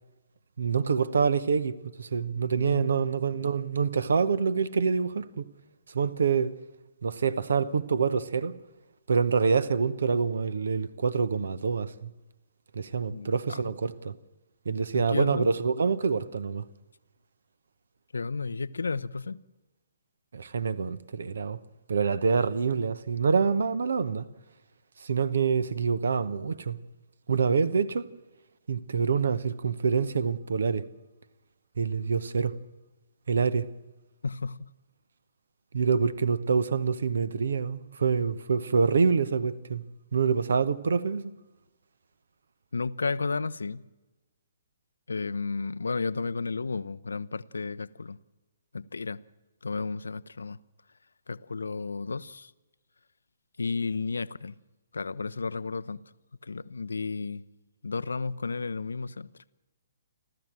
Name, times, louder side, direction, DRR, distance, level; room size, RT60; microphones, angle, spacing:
voice 1, 0.6-5.4 5.9-6.5 7.0-8.6 9.1-12.1 12.7-14.1 14.6-16.7 20.3-21.6 21.9-24.3 25.0-26.8 27.3-28.1 28.7-30.9 31.8-32.5 33.3-33.7 35.7-39.8 40.1-41.3, right 5 dB, 60° right, 1.0 m, -26 dB
voice 2, 2.6-3.1 13.1-13.6 14.9-15.5 18.1-19.4 34.2-34.7 42.7-43.8 45.1-48.2 48.7-49.2 49.6-50.6 51.3-52.5 53.6-54.5 54.9-56.0 56.4-57.4 57.8-59.3, left 4 dB, 70° left, 0.6 m, -32 dB
29.5 x 13.0 x 7.5 m
figure-of-eight pair, 125°, 0 cm